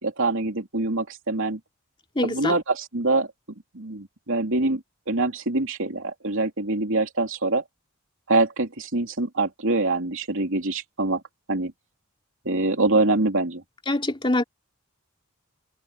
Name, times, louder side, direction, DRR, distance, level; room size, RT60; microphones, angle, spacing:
voice 1, 0.0-1.6 2.2-3.3 3.7-7.6 8.3-11.2 11.5-11.7 12.4-13.6, right 2 dB, 65° right, 3.2 m, -24 dB
voice 2, 2.2-2.5 13.9-14.4, left 1 dB, 25° left, 2.5 m, -24 dB
head